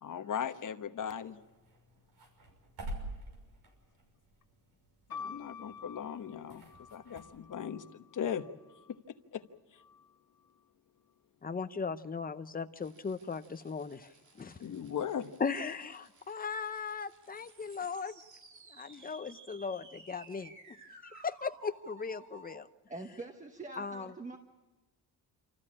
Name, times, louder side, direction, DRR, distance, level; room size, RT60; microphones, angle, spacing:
voice 1, 0.0-1.4 5.1-8.5 8.9-9.4 14.6-15.3, left 8 dB, 55° left, 8 dB, 1.2 m, -38 dB
sound 1, 1.0-7.2, right 1 dB, 80° right, 6.2 m, -48 dB
sound 2, 5.1-8.9 9.8-10.5, left 6 dB, 80° left, 1.9 m, -49 dB
voice 2, 11.4-14.6 15.4-18.2 18.7-20.8 21.0-22.7 23.8-24.1, left 5 dB, 25° left, 10 dB, 0.7 m, -38 dB
sound 3, 12.8-22.6, right 3 dB, 50° right, 2.3 m, -57 dB
voice 3, 22.9-24.4, right 2 dB, 20° right, 4 dB, 1.2 m, -44 dB
27.5 x 14.0 x 8.7 m, 1.2 s
wide cardioid pair, 170°, 37 cm